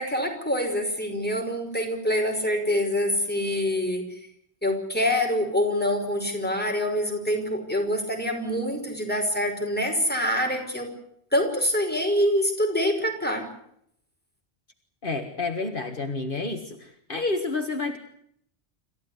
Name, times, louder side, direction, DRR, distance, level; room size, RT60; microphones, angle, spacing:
voice 1, 0.0-4.2 4.6-10.9 11.3-13.5, equal, 10° left, 2 dB, 5.4 m, -25 dB
voice 2, 15.0-18.0, left 3 dB, 50° left, 5 dB, 1.8 m, -29 dB
27.5 x 14.5 x 9.8 m, 0.71 s
omnidirectional pair, 1.1 m